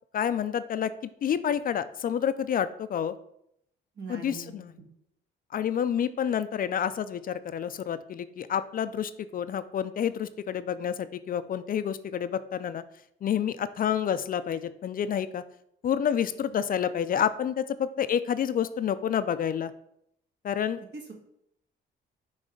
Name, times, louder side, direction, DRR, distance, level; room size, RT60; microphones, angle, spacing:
voice 1, 0.1-0.9 1.2-3.1 4.1-4.7 5.5-12.8 13.2-15.4 15.8-19.7 20.4-20.8, left 8 dB, 45° left, 13 dB, 0.4 m, -29 dB
voice 2, 4.0-4.6 20.9-21.1, right 3 dB, 60° right, 2 dB, 1.5 m, -41 dB
6.2 x 3.3 x 5.1 m, 0.75 s
cardioid pair, 90°, 20 cm